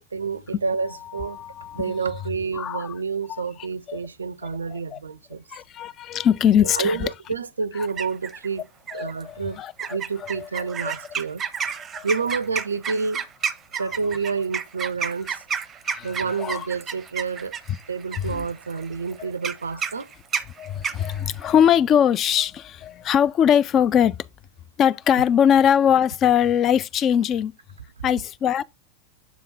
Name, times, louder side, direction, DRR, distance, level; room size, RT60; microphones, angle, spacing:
voice 1, 0.0-1.4 1.7-5.4 6.7-8.6 8.9-9.6 9.9-11.4 12.0-13.2 13.7-15.4 16.0-17.5 17.9-20.1, right 5 dB, 75° right, 0.4 m, -29 dB
voice 2, 0.9-2.1 2.5-3.0 3.3-4.0 4.7-5.0 5.5-7.1 7.7-7.9 8.9-10.9 11.9-12.1 13.8-13.9 15.9-16.7 18.2-18.5 19.2-19.3 19.7-19.8 20.6-24.2 24.8-27.5 28.0-28.6, left 9 dB, 30° left, 0.3 m, -22 dB
sound 1, 7.8-8.5 8.9-9.2 9.8-21.7, right 6 dB, 25° right, 0.6 m, -31 dB
6.9 x 3.7 x 3.9 m
figure-of-eight pair, 90°, 0 cm